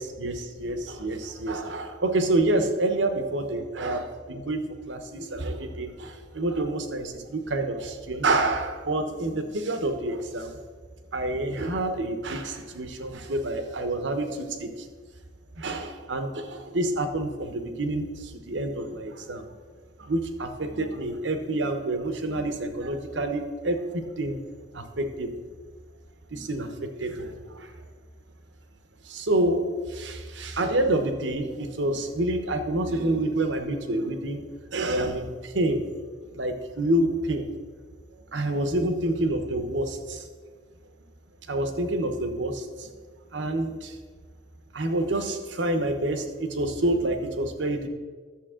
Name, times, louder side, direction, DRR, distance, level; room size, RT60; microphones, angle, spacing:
voice 1, 0.0-10.6 11.1-14.9 15.6-19.5 20.0-24.4 24.7-25.3 26.3-27.7 29.0-35.9 36.3-37.5 38.3-40.3 41.5-42.9 43.3-44.0 44.7-47.9, right 1 dB, 80° right, 7 dB, 1.0 m, -28 dB
11.5 x 7.1 x 3.7 m, 1.5 s
head